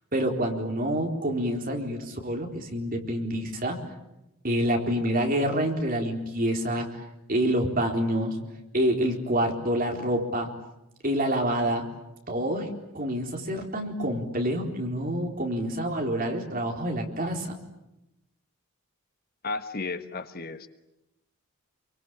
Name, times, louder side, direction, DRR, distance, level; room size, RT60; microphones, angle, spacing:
voice 1, 0.1-3.8 4.4-7.0 7.3-8.4 8.7-10.5 11.0-11.9 12.3-17.5, equal, 40° right, 2 dB, 4.2 m, -27 dB
voice 2, 19.4-20.7, left 3 dB, 40° left, 9 dB, 1.4 m, -33 dB
27.5 x 24.0 x 8.8 m, 0.90 s
head